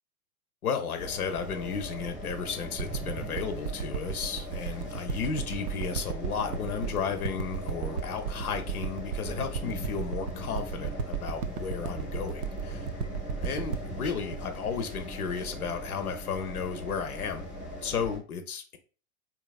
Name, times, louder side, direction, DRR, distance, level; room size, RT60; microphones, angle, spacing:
voice 1, 0.6-12.9 13.4-17.4 17.8-18.8, left 6 dB, 75° left, 0.7 m, -34 dB
sound 1, 1.0-18.2, left 1 dB, 5° right, 0.3 m, -40 dB
sound 2, 2.8-15.5 16.1-16.2, right 8 dB, 75° right, 0.6 m, -35 dB
3.6 x 2.9 x 2.3 m
figure-of-eight pair, 105°, 45 cm